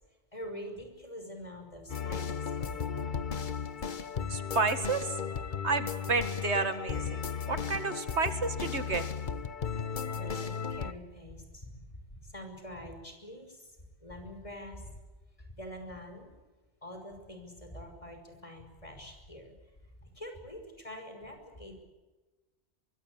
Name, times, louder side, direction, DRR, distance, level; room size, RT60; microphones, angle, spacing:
voice 1, 0.3-3.1 10.1-14.9 15.5-16.3 16.8-19.5 20.0-21.8, equal, 30° left, 5 dB, 6.0 m, -45 dB
sound 1, 1.9-10.9, left 6 dB, 45° left, 1.1 m, -35 dB
voice 2, 4.3-5.1 5.6-9.0, right 4 dB, 70° right, 9 dB, 2.3 m, -31 dB
24.0 x 23.5 x 8.6 m, 1.2 s
omnidirectional pair, 1.2 m